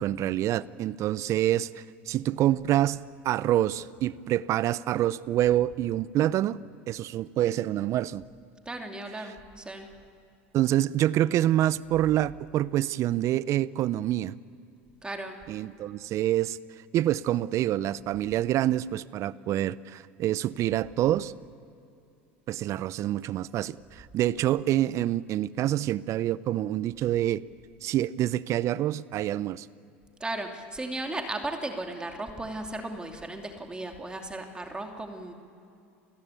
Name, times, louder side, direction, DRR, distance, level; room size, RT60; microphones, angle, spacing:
voice 1, 0.0-3.0 3.2-6.6 6.9-8.2 10.5-14.3 15.5-16.6 16.9-21.3 22.5-27.4 27.8-29.7, right 13 dB, 50° right, 19 dB, 0.7 m, -26 dB
voice 2, 8.6-9.9 15.0-15.4 30.2-35.3, right 2 dB, 15° right, 4 dB, 2.8 m, -36 dB
28.5 x 16.0 x 8.6 m, 2.6 s
hypercardioid pair, 90°, 7 cm